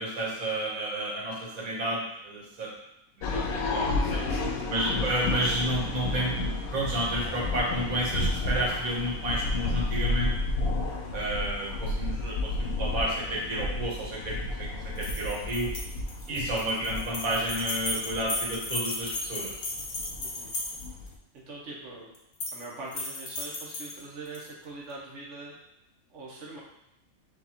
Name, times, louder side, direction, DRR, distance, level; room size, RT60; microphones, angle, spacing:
voice 1, 0.0-2.7 3.2-4.2 4.7-10.3 11.1-15.7 16.3-19.6, right 1 dB, 80° right, -4 dB, 1.6 m, -31 dB
sound 1, 3.2-21.1, left 2 dB, 90° left, 1.1 m, -32 dB
voice 2, 4.0-4.7 10.8-11.2 16.3-16.6 20.2-20.5 21.3-22.1 22.5-25.5 26.1-26.6, right 2 dB, 60° right, -5 dB, 1.2 m, -43 dB
sound 2, 15.0-21.1 22.1-22.6 22.9-24.4, left 2 dB, 70° left, 1.3 m, -35 dB
6.9 x 2.4 x 2.9 m, 0.83 s
omnidirectional pair, 1.5 m